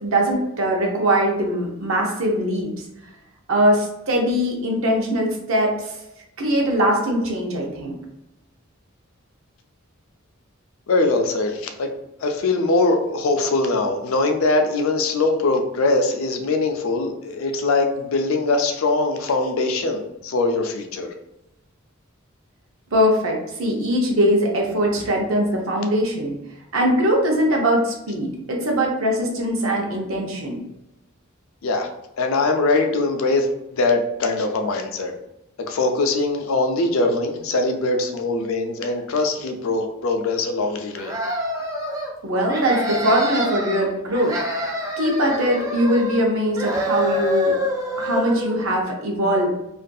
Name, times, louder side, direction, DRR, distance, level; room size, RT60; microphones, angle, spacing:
voice 1, 0.0-2.7 3.5-5.9 6.4-8.0 22.9-26.3 26.7-30.6 42.2-44.3 45.0-47.5 48.0-49.5, equal, 75° right, -1 dB, 0.7 m, -21 dB
voice 2, 10.9-11.9 12.2-21.1 31.6-31.9 32.2-33.5 33.7-35.1 35.7-41.1, left 3 dB, 80° left, 4 dB, 0.4 m, -22 dB
sound 1, 41.0-42.1 42.5-43.8 44.1-46.3 46.6-48.6, equal, 15° right, 0.4 m, -26 dB
2.5 x 2.2 x 2.5 m, 0.88 s
head